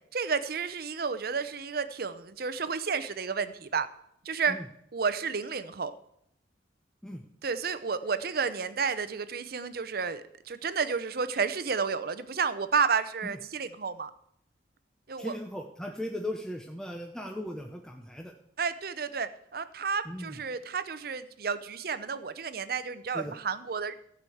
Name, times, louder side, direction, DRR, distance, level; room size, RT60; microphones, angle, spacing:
voice 1, 0.1-3.9 4.2-4.6 4.9-5.9 7.4-14.1 15.1-15.4 18.6-23.9, right 5 dB, 55° right, 12 dB, 0.7 m, -31 dB
voice 2, 15.2-18.3 20.1-20.4 23.1-23.4, left 1 dB, 5° left, 3 dB, 0.7 m, -37 dB
15.0 x 5.0 x 7.8 m, 0.73 s
head